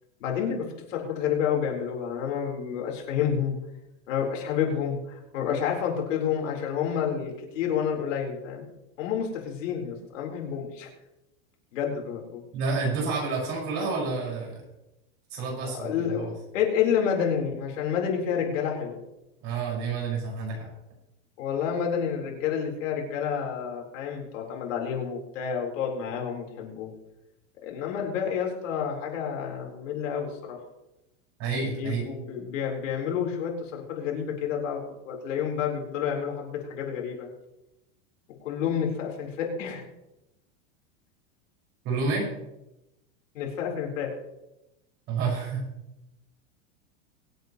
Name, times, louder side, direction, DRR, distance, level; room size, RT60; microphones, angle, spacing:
voice 1, 0.2-3.6 4.1-8.7 9.0-10.9 11.7-12.4 15.6-19.0 21.4-26.9 27.6-30.6 31.5-37.3 38.4-39.8 43.3-44.1, left 7 dB, 70° left, 0 dB, 4.2 m, -29 dB
voice 2, 12.5-14.6 15.3-15.9 19.4-20.7 31.4-32.1 41.8-42.3 45.1-45.6, right 4 dB, 35° right, -3 dB, 5.6 m, -29 dB
24.0 x 8.3 x 3.1 m, 0.91 s
supercardioid pair, 175°, 39 cm